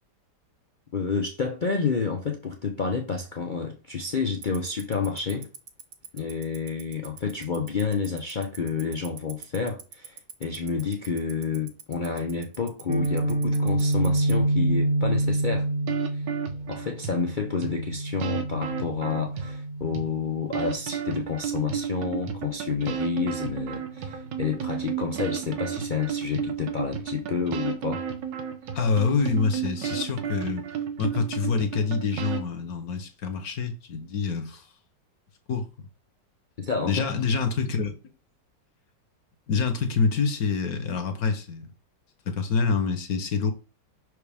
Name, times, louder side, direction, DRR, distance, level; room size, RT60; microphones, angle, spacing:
voice 1, 0.9-5.5 6.1-15.7 16.1-16.2 16.7-28.0 36.6-37.1, left 5 dB, 85° left, 0.4 m, -29 dB
Tick-tock, 4.4-14.3, right 9 dB, 60° right, 0.9 m, -40 dB
Guitar, 12.9-20.7, right 1 dB, 35° right, 0.8 m, -27 dB
sound 1, 15.9-17.2 17.6-17.7 18.2-19.6 19.9-20.0 20.5-32.4, right 8 dB, 85° right, 1.5 m, -32 dB
voice 2, 28.7-30.6 31.0-34.7 35.5-35.6 36.9-37.9 39.5-41.7 42.3-43.5, left 5 dB, 60° left, 1.2 m, -26 dB
5.9 x 4.7 x 3.4 m
omnidirectional pair, 1.9 m